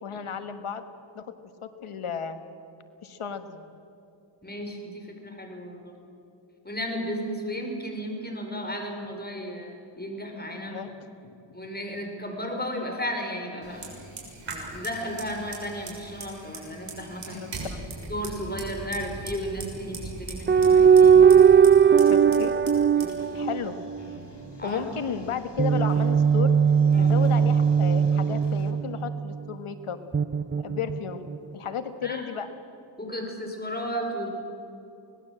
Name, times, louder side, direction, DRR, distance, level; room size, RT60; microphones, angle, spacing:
voice 1, 0.0-0.8 1.1-1.3 1.6-2.4 3.0-3.6 10.7-10.9 17.3-17.8 22.0-22.6 23.3-23.8 24.6-26.5 27.0-30.0 30.6-31.3 31.5-32.5, left 7 dB, 90° left, 9 dB, 1.6 m, -33 dB
voice 2, 4.4-6.0 6.6-10.8 11.5-13.9 14.4-17.4 18.1-21.5 22.9-23.2 24.6-24.9 26.9-27.2 32.0-32.2 33.0-34.3, equal, 20° left, 3 dB, 4.9 m, -34 dB
Fire, 13.6-25.5, right 3 dB, 60° right, 6.6 m, -40 dB
sound 1, 20.5-24.2 25.6-29.3 30.1-31.4, right 7 dB, 25° right, 0.5 m, -19 dB
sound 2, 23.2-28.7, left 3 dB, 55° left, 3.2 m, -51 dB
25.0 x 19.5 x 7.7 m, 2.7 s
cardioid pair, 65°, 49 cm